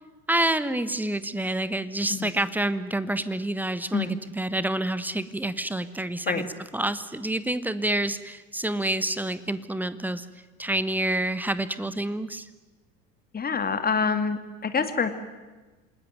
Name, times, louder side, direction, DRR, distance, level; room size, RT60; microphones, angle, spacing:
voice 1, 0.3-10.3 10.6-12.5, right 1 dB, 5° right, 14 dB, 1.3 m, -28 dB
voice 2, 13.3-15.1, left 5 dB, 20° left, 9 dB, 2.4 m, -26 dB
27.5 x 20.0 x 9.4 m, 1.2 s
figure-of-eight pair, 75°, 47 cm